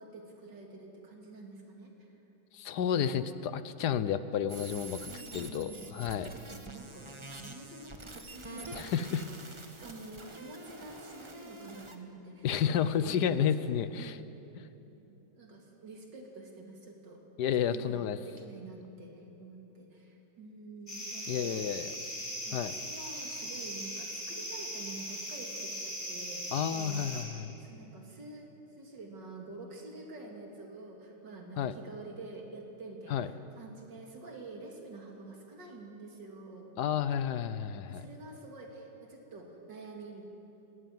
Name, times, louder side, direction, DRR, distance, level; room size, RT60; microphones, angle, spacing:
voice 1, 0.0-2.1 5.0-12.5 12.8-13.3 13.5-13.6 14.0-14.3 14.9-17.2 17.6-21.8 22.4-27.3 27.6-36.7 37.9-40.3, right 2 dB, 85° right, 1 dB, 3.4 m, -48 dB
voice 2, 2.5-6.3 8.7-9.2 12.4-14.2 17.4-18.2 21.3-21.9 22.5-22.7 26.5-27.5 31.6-31.7 33.1-33.3 36.8-38.0, left 8 dB, 70° left, 13 dB, 1.3 m, -31 dB
sound 1, 4.5-12.0, right 2 dB, 20° right, 1.1 m, -47 dB
sound 2, 20.9-27.2, equal, 20° left, 5.2 m, -39 dB
19.5 x 17.5 x 9.3 m, 3.0 s
omnidirectional pair, 1.9 m